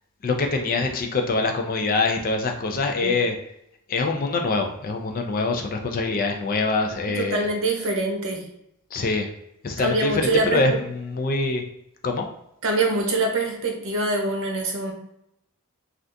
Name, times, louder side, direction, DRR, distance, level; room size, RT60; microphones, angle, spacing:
voice 1, 0.2-3.4 3.9-7.5 7.8-7.9 8.9-9.3 9.6-11.6 12.0-12.3, left 3 dB, 40° left, 4 dB, 0.4 m, -24 dB
voice 2, 7.1-8.5 9.8-10.7 12.6-14.9, right 2 dB, 65° right, 1 dB, 0.8 m, -24 dB
3.3 x 2.4 x 2.6 m, 0.79 s
head